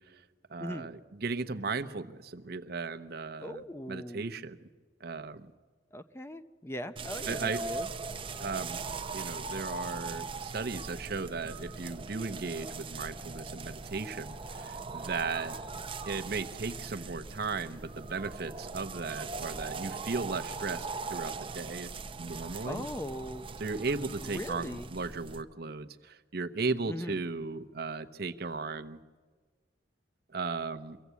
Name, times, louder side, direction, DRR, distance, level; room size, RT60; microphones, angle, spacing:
voice 1, 0.5-4.6 5.0-5.5 7.3-7.6 8.4-8.8 9.1-15.6 16.1-21.9 22.2-22.8 23.6-29.0 30.3-31.0, right 4 dB, 60° right, 8 dB, 0.9 m, -36 dB
voice 2, 3.4-4.3 5.9-7.9 22.6-23.5 24.2-24.9 26.9-27.2, left 1 dB, 15° left, 10 dB, 0.6 m, -39 dB
sound 1, 7.0-25.4, right 4 dB, 30° right, 0.7 m, -40 dB
23.5 x 15.5 x 8.3 m, 1.4 s
head